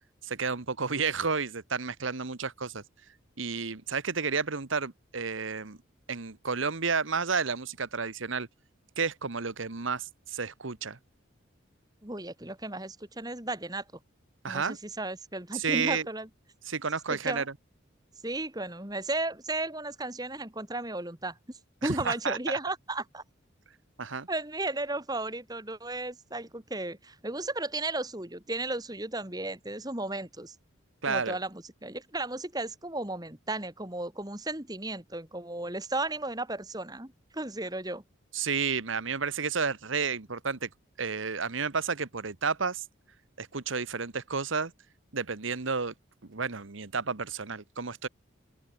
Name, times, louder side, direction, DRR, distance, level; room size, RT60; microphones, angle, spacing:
voice 1, 0.2-2.8 3.4-5.8 6.1-8.5 9.0-11.0 14.4-14.8 15.5-16.1 16.7-17.5 21.8-22.6 24.0-24.3 31.0-31.4 38.3-40.7 41.0-42.8 43.4-44.7 45.1-45.9 46.2-48.1, right 5 dB, 75° right, 1.3 m, -31 dB
voice 2, 12.0-13.8 14.5-16.3 17.1-17.4 18.2-23.2 24.3-30.5 31.0-38.0, right 2 dB, 20° right, 2.4 m, -34 dB
open air
head